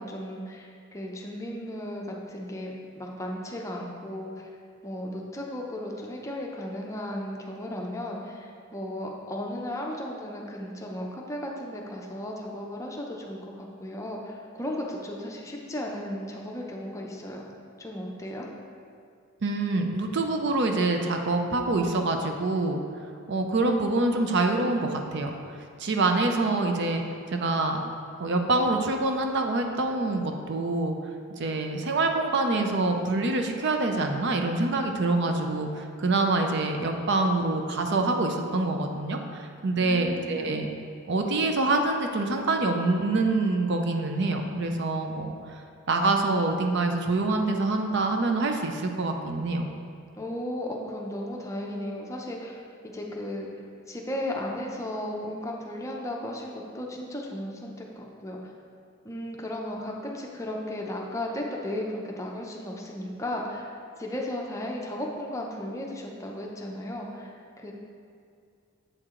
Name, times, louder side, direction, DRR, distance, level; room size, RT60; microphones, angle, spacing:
voice 1, 0.0-4.5 4.8-17.4 17.8-18.5 39.8-40.6 50.2-53.5 53.9-58.4 59.0-63.7 64.0-67.7, left 1 dB, 15° left, -1 dB, 0.6 m, -35 dB
voice 2, 19.4-22.8 23.3-27.0 27.3-27.8 28.2-30.9 31.4-40.7 41.1-49.7, right 2 dB, 55° right, 4 dB, 0.5 m, -26 dB
7.7 x 4.7 x 3.7 m, 2.3 s
head